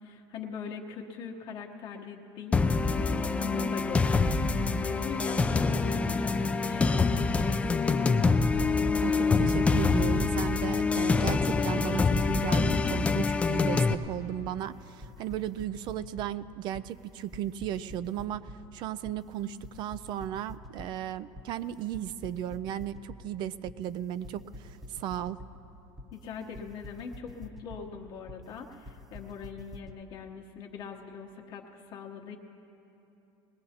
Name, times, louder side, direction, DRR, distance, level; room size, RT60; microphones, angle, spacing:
voice 1, 0.0-4.4 4.8-8.3 26.1-32.4, left 5 dB, 50° left, 1 dB, 1.0 m, -42 dB
sound 1, 2.5-13.9, left 4 dB, 10° left, 0.4 m, -25 dB
voice 2, 9.0-25.4, right 11 dB, 50° right, 15 dB, 0.4 m, -35 dB
sound 2, 12.3-30.0, left 1 dB, 5° right, 0.9 m, -47 dB
21.0 x 17.0 x 2.9 m, 3.0 s
cardioid pair, 135°, 10 cm